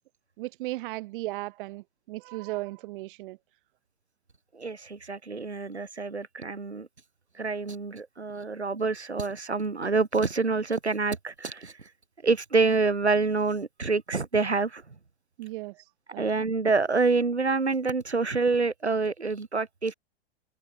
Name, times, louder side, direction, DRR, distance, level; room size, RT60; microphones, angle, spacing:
voice 1, 0.4-3.4 15.4-16.2, right 19 dB, 50° right, 5.4 m, -36 dB
voice 2, 4.5-6.9 7.4-11.7 12.2-14.8 16.2-19.9, right 4 dB, 90° right, 4.1 m, -27 dB
figure-of-eight pair, 100°, 32 cm